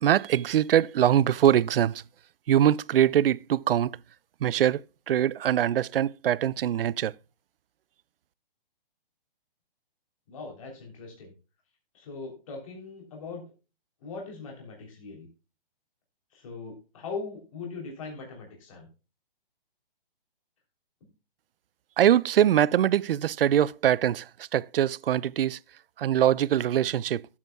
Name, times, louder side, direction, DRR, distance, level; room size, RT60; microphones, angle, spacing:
voice 1, 0.0-2.0 2.5-4.0 4.4-7.1 22.0-24.3 24.5-25.6 26.0-27.3, right 10 dB, 70° right, 0.4 m, -23 dB
voice 2, 10.3-11.3 11.9-13.4 14.0-15.3 16.3-18.9, left 4 dB, 35° left, 3.2 m, -40 dB
13.5 x 8.4 x 2.2 m
hypercardioid pair, 175°, 29 cm